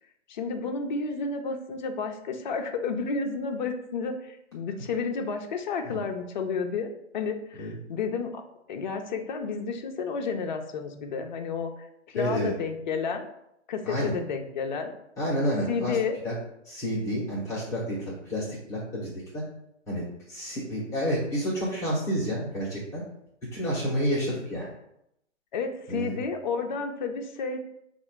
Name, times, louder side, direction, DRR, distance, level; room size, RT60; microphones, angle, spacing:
voice 1, 0.3-8.4 8.7-13.3 13.7-14.9 15.7-16.2 25.5-27.6, left 5 dB, 40° left, 4 dB, 0.5 m, -31 dB
voice 2, 12.1-12.5 13.8-14.2 15.2-16.0 16.2-16.3 16.6-19.4 19.9-23.0 23.5-24.7 25.9-26.2, equal, 10° left, -8 dB, 0.8 m, -29 dB
4.3 x 2.4 x 4.4 m, 0.79 s
hypercardioid pair, 150°, 37 cm